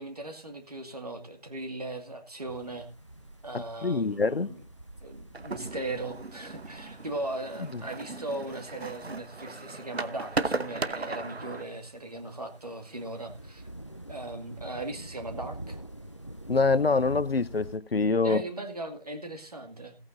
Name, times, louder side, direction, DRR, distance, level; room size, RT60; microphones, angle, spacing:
voice 1, 0.0-2.9 3.4-4.6 5.0-13.7 14.1-15.8 18.2-20.0, right 2 dB, 40° right, 2.0 m, -38 dB
sound 1, 2.5-17.8, right 1 dB, 30° left, 0.6 m, -47 dB
voice 2, 3.5-4.5 16.5-18.4, left 4 dB, 70° left, 0.8 m, -25 dB
sound 2, 5.3-11.6, right 3 dB, 85° right, 1.0 m, -36 dB
17.5 x 9.1 x 2.6 m
figure-of-eight pair, 170°, 31 cm